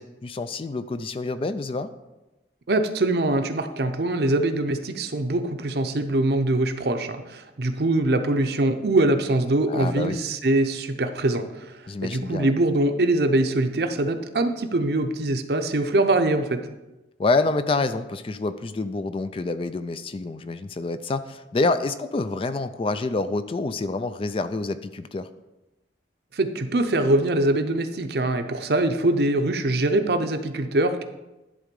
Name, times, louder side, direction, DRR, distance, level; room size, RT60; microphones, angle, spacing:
voice 1, 0.0-1.9 9.7-10.2 11.9-12.5 17.2-25.3, left 3 dB, 30° left, 11 dB, 0.3 m, -27 dB
voice 2, 2.7-11.7 12.0-16.6 26.3-31.0, right 2 dB, 60° right, 7 dB, 0.7 m, -23 dB
11.0 x 3.8 x 5.3 m, 1.0 s
head